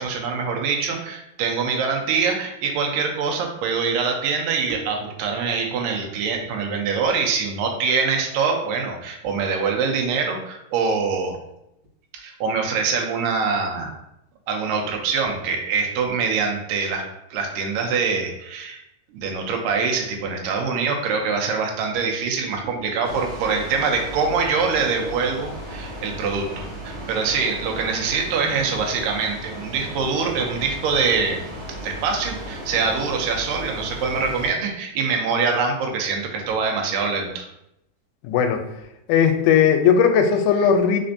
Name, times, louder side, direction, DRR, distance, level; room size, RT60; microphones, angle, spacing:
voice 1, 0.0-11.4 12.1-13.9 14.5-17.0 17.3-18.8 19.1-31.4 31.8-37.5, right 5 dB, 90° right, 2 dB, 2.3 m, -24 dB
sound 1, 23.0-34.5, equal, 60° right, 1.2 m, -35 dB
voice 2, 38.2-38.6 39.1-41.0, left 7 dB, 80° left, 6 dB, 2.0 m, -17 dB
4.3 x 4.3 x 2.6 m, 0.83 s
omnidirectional pair, 3.8 m